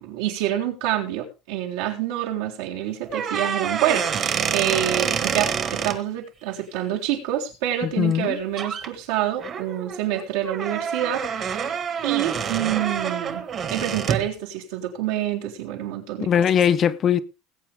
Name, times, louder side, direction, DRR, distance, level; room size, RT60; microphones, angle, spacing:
voice 1, 0.0-11.7 12.0-13.4 13.7-16.3, right 12 dB, 80° right, 3.7 m, -27 dB
sound 1, 3.0-6.0 8.1-8.3 8.6-8.9 9.4-14.3, right 7 dB, 25° right, 1.4 m, -27 dB
voice 2, 7.8-8.4 16.2-17.2, left 8 dB, 25° left, 0.6 m, -20 dB
20.0 x 8.6 x 3.5 m
cardioid pair, 175°, 0 cm